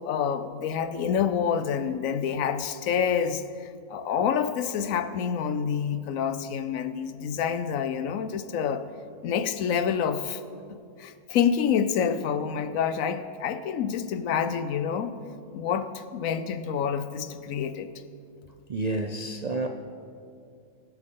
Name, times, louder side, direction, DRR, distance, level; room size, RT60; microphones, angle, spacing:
voice 1, 0.0-3.4 3.9-8.9 9.2-10.4 10.7-15.1 15.5-17.9, left 7 dB, 75° left, 11 dB, 1.0 m, -27 dB
voice 2, 18.7-19.7, right 2 dB, 55° right, 3 dB, 0.4 m, -29 dB
20.0 x 7.9 x 3.8 m, 2.3 s
omnidirectional pair, 1.4 m